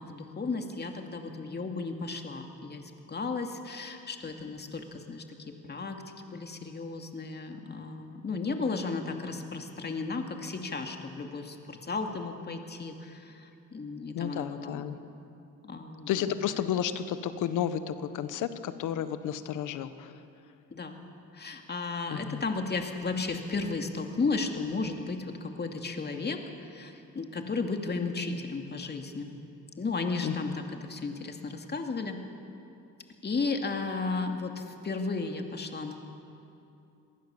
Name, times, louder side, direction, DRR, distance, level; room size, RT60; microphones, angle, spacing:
voice 1, 0.0-14.9 15.6-16.3 20.7-21.0 21.3-29.3 29.8-32.2 33.2-36.0, left 4 dB, 35° left, 4 dB, 2.5 m, -34 dB
voice 2, 14.1-15.0 16.1-20.1 22.1-22.4 30.2-30.3, left 9 dB, 85° left, 11 dB, 1.3 m, -32 dB
26.0 x 19.5 x 7.2 m, 2.7 s
cardioid pair, 90°, 30 cm